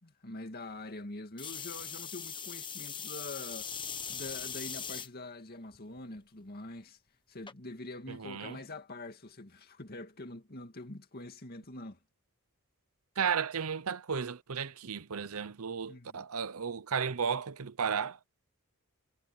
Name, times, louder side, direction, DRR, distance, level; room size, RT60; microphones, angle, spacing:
voice 1, 0.0-3.7 4.1-7.0 7.3-12.0 15.9-16.3, left 2 dB, 45° left, 2.2 m, -45 dB
sound 1, 1.4-5.1 5.7-6.2 7.5-7.6, left 7 dB, 20° left, 1.2 m, -40 dB
voice 2, 8.1-8.6 13.2-18.2, right 6 dB, 75° right, 0.8 m, -34 dB
head